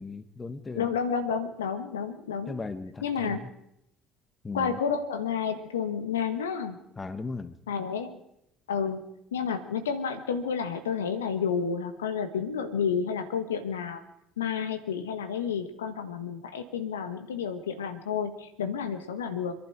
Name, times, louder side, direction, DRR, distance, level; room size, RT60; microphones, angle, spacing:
voice 1, 0.0-0.9 2.5-3.5 4.4-4.8 7.0-7.6, left 3 dB, 25° left, 11 dB, 1.5 m, -37 dB
voice 2, 0.7-2.6 3.0-3.4 4.5-6.8 7.7-8.2 8.7-9.0 9.3-14.0 14.4-19.5, left 6 dB, 85° left, 9 dB, 1.5 m, -30 dB
26.5 x 11.0 x 4.7 m, 0.77 s
hypercardioid pair, 55°, 0 cm